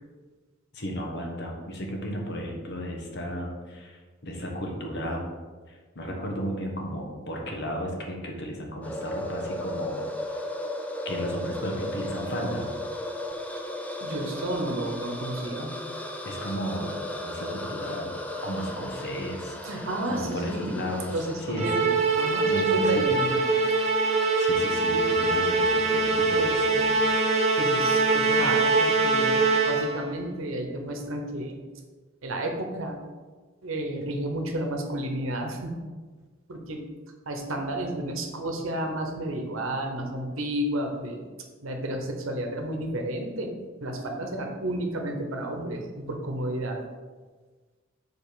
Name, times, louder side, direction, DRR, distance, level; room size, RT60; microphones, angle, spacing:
voice 1, 0.7-5.2 5.7-10.5 11.0-12.7 16.2-18.1 18.4-21.7 22.4-23.1 24.4-27.2, equal, 55° left, 0 dB, 1.2 m, -34 dB
sound 1, 8.8-23.0, left 1 dB, 5° left, 0.4 m, -36 dB
voice 2, 14.0-15.7 19.6-20.8 21.1-23.5 27.6-31.6 32.2-33.0 33.6-35.7 36.5-36.8 37.3-41.2 41.6-43.5 43.8-46.8, right 1 dB, 70° right, 3 dB, 1.0 m, -31 dB
Musical instrument, 21.6-30.1, right 3 dB, 35° right, 0.9 m, -23 dB
5.4 x 4.2 x 5.0 m, 1.4 s
head